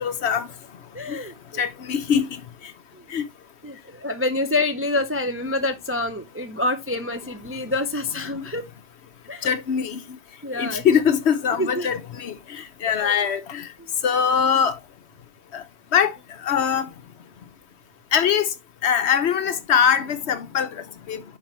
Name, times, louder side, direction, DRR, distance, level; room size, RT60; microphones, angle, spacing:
voice 1, 0.0-0.5 1.1-1.2 1.6-2.4 3.1-3.2 9.4-10.0 10.6-13.7 14.0-14.8 15.5-15.6 15.9-16.1 16.4-16.9 18.1-18.5 18.8-21.2, left 7 dB, 65° left, 1.0 m, -22 dB
voice 2, 0.9-1.6 2.9-3.1 3.6-8.7 9.3-9.5 10.4-10.8 11.6-11.9 12.9-13.2 13.8-13.9, left 2 dB, 20° right, 0.4 m, -27 dB
9.9 x 4.6 x 3.0 m
omnidirectional pair, 1.2 m